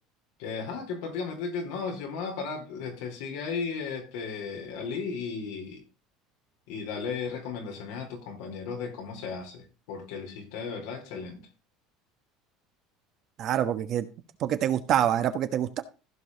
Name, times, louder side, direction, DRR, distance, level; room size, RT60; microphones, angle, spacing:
voice 1, 0.4-5.8 6.7-11.4, left 5 dB, 80° left, 4.0 m, -35 dB
voice 2, 13.4-14.1 14.4-15.8, right 10 dB, 50° right, 1.3 m, -26 dB
15.5 x 5.5 x 4.0 m
supercardioid pair, 125°, 0 cm